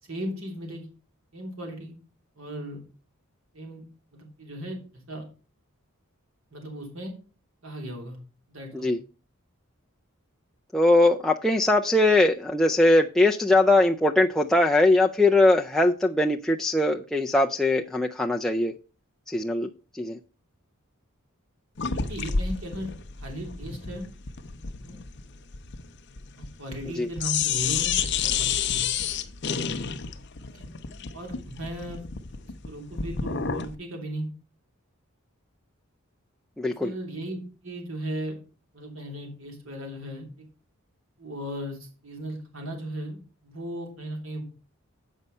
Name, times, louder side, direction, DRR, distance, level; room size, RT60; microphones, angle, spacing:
voice 1, 0.0-0.9 1.3-1.9 2.4-2.8 3.5-3.8 4.1-4.8 5.1-5.2 6.5-7.1 7.6-8.2 8.5-8.9 21.9-22.9 23.2-24.0 24.8-25.0 26.4-27.9 28.2-28.9 30.5-30.6 31.1-32.1 32.4-34.3 36.7-38.3 38.7-40.5 41.2-44.4, right 1 dB, 65° right, 2 dB, 3.1 m, -36 dB
voice 2, 10.7-18.7 19.3-19.7 20.0-20.2 27.0-27.1 36.6-36.9, left 2 dB, ahead, 0 dB, 0.3 m, -21 dB
sound 1, 21.8-26.9 27.2-33.7, left 7 dB, 55° left, 0.7 m, -30 dB
8.2 x 5.5 x 5.3 m, 0.35 s
head